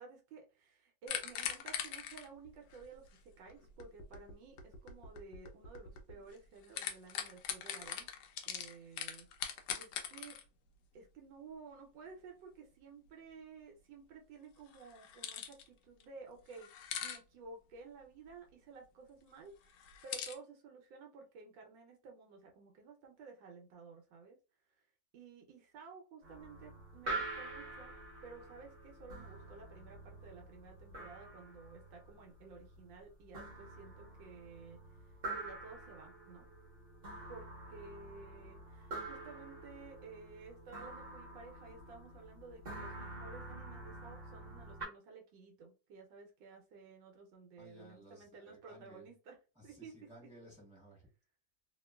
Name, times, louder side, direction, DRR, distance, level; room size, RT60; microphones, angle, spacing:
voice 1, 0.0-8.1 8.4-10.4 10.9-24.4 24.8-24.9 25.1-27.9 28.2-36.5 37.3-49.4 49.6-49.9, right 4 dB, 80° right, 2 dB, 1.3 m, -54 dB
sound 1, 1.1-6.4 6.6-10.4 14.7-15.7 16.0-16.1 16.5-17.2 19.7-20.3, left 8 dB, 75° left, 1.1 m, -42 dB
sound 2, 26.2-44.9, right 2 dB, 40° right, 1.0 m, -47 dB
voice 2, 47.6-49.1 49.5-51.1, right 1 dB, 5° right, -5 dB, 1.2 m, -57 dB
2.9 x 2.8 x 2.2 m, 0.33 s
omnidirectional pair, 2.0 m